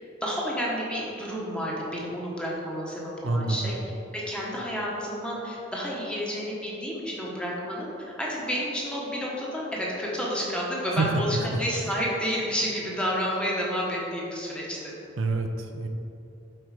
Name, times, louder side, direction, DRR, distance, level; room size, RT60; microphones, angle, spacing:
voice 1, 0.2-3.8 4.1-7.9 8.2-14.9, equal, 5° left, -4 dB, 1.2 m, -30 dB
voice 2, 3.2-3.7 10.9-11.1 11.5-11.6 15.2-15.9, right 3 dB, 85° right, 5 dB, 0.6 m, -27 dB
7.8 x 4.6 x 4.9 m, 2.9 s
head